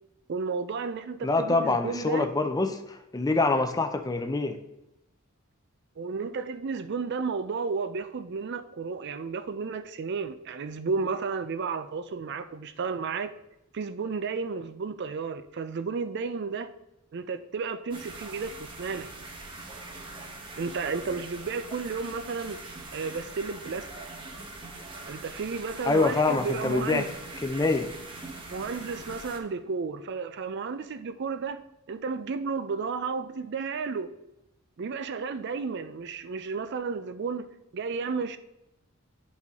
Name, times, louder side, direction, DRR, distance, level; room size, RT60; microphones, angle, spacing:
voice 1, 0.3-2.3 6.0-13.3 13.7-16.7 17.1-19.1 20.6-22.6 22.9-23.9 25.1-27.1 28.5-31.6 31.9-34.1 34.8-38.4, right 5 dB, 55° right, 0.4 m, -32 dB
voice 2, 1.2-4.6 25.8-27.1 27.4-27.9, left 3 dB, 15° left, 0.5 m, -25 dB
sound 1, 17.9-29.4, right 2 dB, 25° right, 0.9 m, -42 dB
10.0 x 4.2 x 3.6 m
head